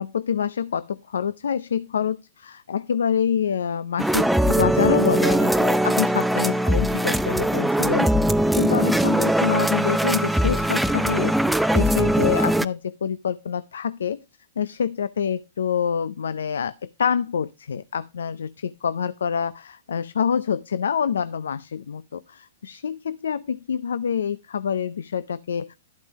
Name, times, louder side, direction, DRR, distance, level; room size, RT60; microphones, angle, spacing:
voice 1, 0.0-8.1 8.6-11.4 11.7-14.2 14.6-25.7, left 7 dB, 80° left, 0.5 m, -26 dB
sound 1, 4.0-12.7, right 1 dB, ahead, 0.5 m, -21 dB
11.5 x 8.6 x 3.0 m
hypercardioid pair, 115°, 0 cm